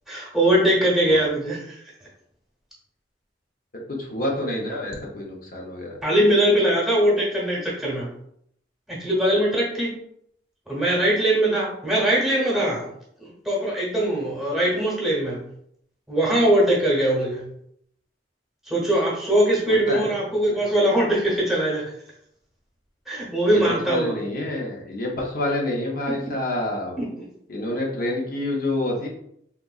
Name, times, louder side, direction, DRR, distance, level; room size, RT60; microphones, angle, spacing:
voice 1, 0.1-1.8 6.0-8.1 8.9-9.9 10.7-12.9 13.2-15.4 16.1-17.4 18.7-21.9 23.1-24.1 27.0-27.1, right 1 dB, ahead, -5 dB, 1.0 m, -21 dB
voice 2, 3.7-6.0 19.7-20.1 20.5-20.6 23.5-27.0 27.5-29.1, left 1 dB, 50° left, -2 dB, 0.6 m, -28 dB
3.5 x 2.8 x 2.3 m, 0.72 s
head